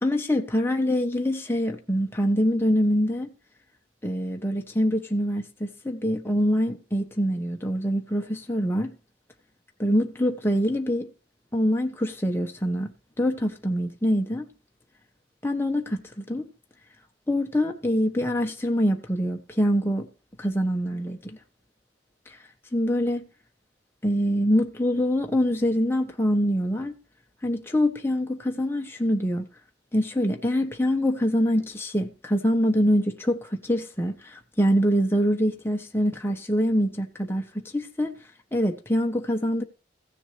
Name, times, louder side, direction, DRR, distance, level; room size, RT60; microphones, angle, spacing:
voice 1, 0.0-3.3 4.0-8.9 9.8-11.1 11.5-12.9 13.2-14.5 15.4-16.5 17.3-20.1 20.4-21.4 22.7-23.3 24.0-27.0 27.4-29.5 29.9-38.2 38.5-39.6, equal, 15° left, 1.2 m, -25 dB
15.5 x 7.2 x 3.4 m
head